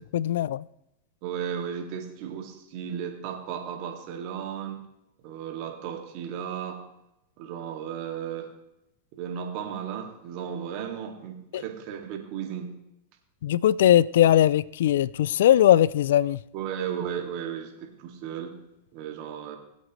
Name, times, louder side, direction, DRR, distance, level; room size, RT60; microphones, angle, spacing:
voice 1, 0.1-0.6 11.5-11.6 13.4-16.4, left 11 dB, 75° left, 0.3 m, -20 dB
voice 2, 1.2-4.9 5.2-6.8 7.4-8.5 9.2-12.7 16.5-18.6 18.9-19.6, right 8 dB, 55° right, 2.2 m, -35 dB
20.5 x 8.1 x 3.2 m
hypercardioid pair, 120°, 0 cm